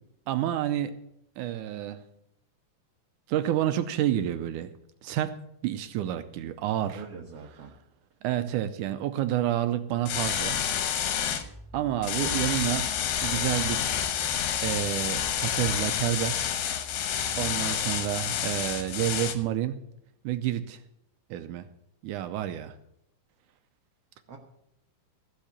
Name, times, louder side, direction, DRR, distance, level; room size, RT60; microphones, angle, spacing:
voice 1, 0.3-0.9 1.4-2.0 3.3-4.7 5.0-5.4 5.6-7.0 8.2-10.6 11.7-12.9 13.2-13.9 14.6-16.4 17.0-19.8 20.2-20.8 21.3-21.7 22.0-22.7, right 12 dB, 80° right, 9 dB, 1.9 m, -29 dB
voice 2, 6.9-7.7 24.3-24.4, right 6 dB, 60° right, 1 dB, 1.7 m, -43 dB
sound 1, 10.1-11.4 12.0-19.3, left 9 dB, 75° left, 2.7 m, -29 dB
sound 2, 11.3-19.4, left 2 dB, 15° right, 0.8 m, -47 dB
15.0 x 5.7 x 8.3 m, 0.78 s
omnidirectional pair, 4.2 m